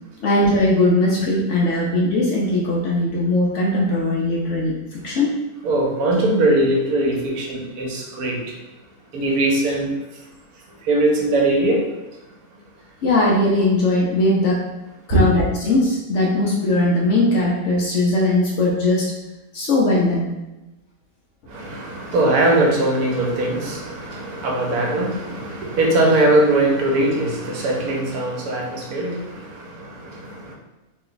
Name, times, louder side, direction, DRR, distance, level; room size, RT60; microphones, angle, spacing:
voice 1, 0.2-5.3 13.0-14.6 15.1-19.1 19.5-20.3, left 2 dB, 65° left, -3 dB, 0.8 m, -19 dB
voice 2, 5.6-8.5 9.1-9.9 10.8-11.9 15.1-15.2 21.5-30.6, right 2 dB, 80° right, -1 dB, 1.2 m, -20 dB
3.0 x 2.2 x 3.8 m, 1.0 s
omnidirectional pair, 1.6 m